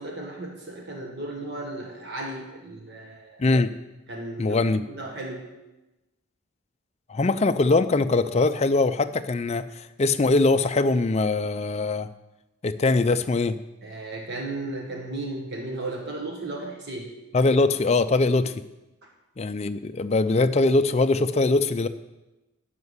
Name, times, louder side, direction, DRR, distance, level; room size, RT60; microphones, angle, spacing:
voice 1, 0.0-3.6 4.1-5.5 13.8-17.1, right 2 dB, 50° right, 1 dB, 1.5 m, -35 dB
voice 2, 3.4-3.7 4.4-4.8 7.1-12.1 12.6-13.6 17.3-18.6 19.4-21.9, left 3 dB, 30° left, 10 dB, 0.4 m, -22 dB
11.0 x 5.9 x 8.1 m, 1.0 s
head